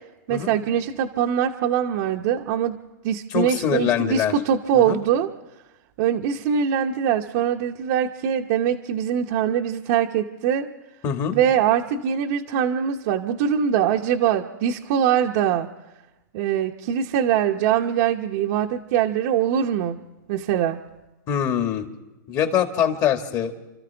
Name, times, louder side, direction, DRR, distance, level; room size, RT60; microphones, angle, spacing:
voice 1, 0.3-2.8 3.0-5.3 6.0-10.7 11.3-15.7 16.3-20.0 20.3-20.8, right 9 dB, 50° right, 1 dB, 0.9 m, -22 dB
voice 2, 3.3-4.3 4.7-5.0 11.0-11.4 21.3-21.9 22.3-23.6, left 9 dB, 35° left, 5 dB, 1.8 m, -23 dB
29.5 x 13.5 x 3.4 m, 1.0 s
hypercardioid pair, 135°, 11 cm